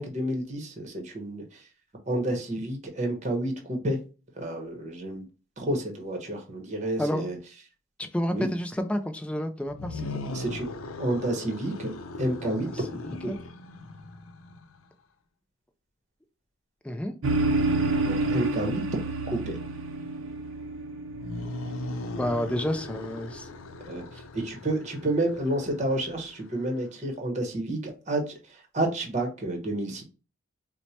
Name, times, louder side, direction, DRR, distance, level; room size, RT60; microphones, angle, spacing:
voice 1, 0.0-1.7 2.1-4.0 4.4-5.2 5.6-7.4 8.3-8.5 10.3-10.7 11.0-11.9 12.2-12.7 13.2-13.3 18.1-18.8 19.3-19.6 23.9-30.0, right 1 dB, 35° right, 3 dB, 0.8 m, -30 dB
voice 2, 8.1-10.4 12.4-12.7 13.0-13.4 16.8-17.1 22.2-23.5, equal, 5° left, 6 dB, 0.3 m, -30 dB
sound 1, 9.7-14.8 21.1-26.7, left 2 dB, 85° left, 0.5 m, -39 dB
sound 2, 17.2-22.8, right 2 dB, 70° right, 0.6 m, -29 dB
4.5 x 2.1 x 2.7 m, 0.33 s
head